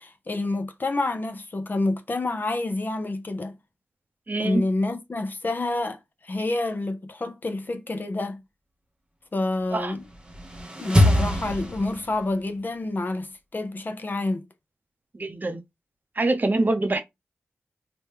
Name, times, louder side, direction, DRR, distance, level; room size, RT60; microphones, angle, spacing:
voice 1, 0.0-3.5 4.4-8.4 9.3-10.0 10.8-14.4, left 2 dB, 45° left, 0.6 m, -28 dB
voice 2, 4.3-4.6 9.7-9.9 15.1-15.6 16.2-17.0, right 2 dB, 40° right, 0.7 m, -24 dB
sound 1, 10.0-12.4, left 1 dB, 20° right, 1.0 m, -23 dB
3.0 x 2.2 x 3.5 m
cardioid pair, 45°, 5 cm